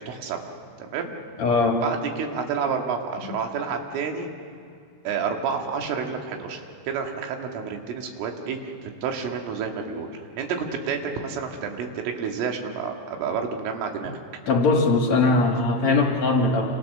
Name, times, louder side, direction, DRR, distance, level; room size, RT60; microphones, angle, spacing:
voice 1, 0.1-0.4 0.8-1.1 1.8-4.3 5.0-14.1, right 6 dB, 90° right, 3 dB, 4.5 m, -29 dB
voice 2, 1.4-1.9 14.5-16.7, left 3 dB, 55° left, 2 dB, 2.1 m, -20 dB
28.0 x 27.0 x 6.7 m, 2.4 s
omnidirectional pair, 5.5 m